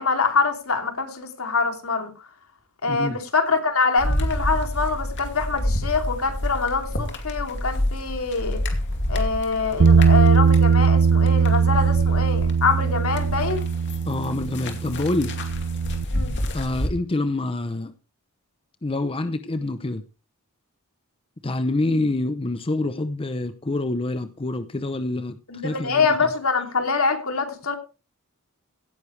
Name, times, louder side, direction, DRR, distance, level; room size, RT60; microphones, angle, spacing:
voice 1, 0.0-2.1 2.8-8.6 9.1-13.7 16.1-16.3 25.5-27.8, left 4 dB, 80° left, 4 dB, 2.9 m, -24 dB
voice 2, 2.9-3.2 14.1-15.4 16.5-17.9 18.8-20.0 21.4-25.4 25.6-26.3, left 2 dB, 25° left, 10 dB, 0.7 m, -26 dB
sound 1, 4.0-12.6 12.9-16.9, left 1 dB, 55° left, 2.4 m, -28 dB
Bass guitar, 9.8-16.1, right 5 dB, 70° right, 0.6 m, -19 dB
17.0 x 9.9 x 3.3 m, 0.32 s
head